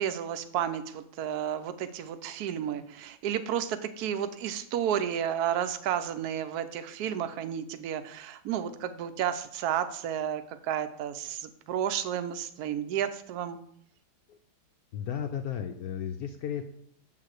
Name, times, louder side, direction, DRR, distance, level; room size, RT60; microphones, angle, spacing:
voice 1, 0.0-13.6, right 9 dB, 70° right, 10 dB, 1.1 m, -32 dB
voice 2, 14.9-16.6, left 8 dB, 70° left, 6 dB, 0.9 m, -34 dB
7.3 x 3.9 x 6.3 m, 0.68 s
omnidirectional pair, 1.9 m